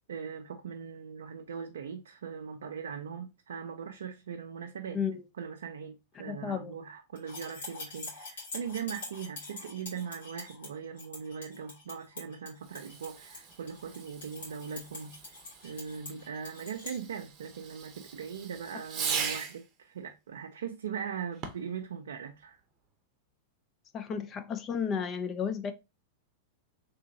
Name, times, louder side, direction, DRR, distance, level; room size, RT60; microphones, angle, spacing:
voice 1, 0.1-5.0 5.4-15.3 15.6-22.6, right 7 dB, 80° right, 0.4 m, -40 dB
voice 2, 6.2-6.8 23.9-25.7, left 7 dB, 30° left, 0.5 m, -33 dB
sound 1, 7.2-17.0, left 3 dB, 75° left, 1.8 m, -45 dB
Fireworks, 12.6-19.7 21.3-21.8, right 6 dB, 35° right, 0.7 m, -40 dB
3.4 x 2.9 x 2.6 m
hypercardioid pair, 105°, 0 cm